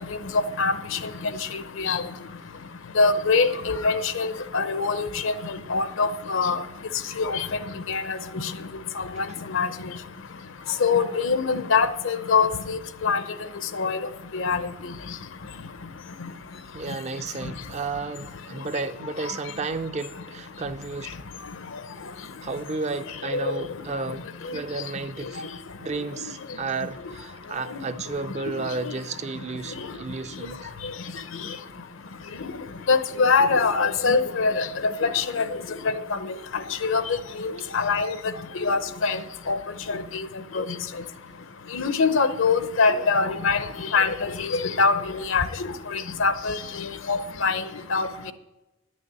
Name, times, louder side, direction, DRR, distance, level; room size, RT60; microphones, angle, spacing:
voice 1, 0.6-1.0 1.5-2.0 3.0-5.3 5.7-6.6 7.2-7.5 7.9-8.5 9.0-9.3 9.5-9.7 10.8-13.2 13.7-14.0 14.3-14.6 23.3-23.5 32.9-35.5 36.1-36.2 36.8-37.0 37.4-38.1 38.6-39.2 39.5-39.6 39.9-40.3 40.5-40.6 41.7-43.6 43.9-45.4 45.9-47.6 47.9-48.1, left 4 dB, 65° left, 0.7 m, -23 dB
voice 2, 16.7-21.2 22.4-25.5 25.8-30.7, right 3 dB, 35° right, 0.5 m, -32 dB
10.5 x 6.5 x 8.8 m
head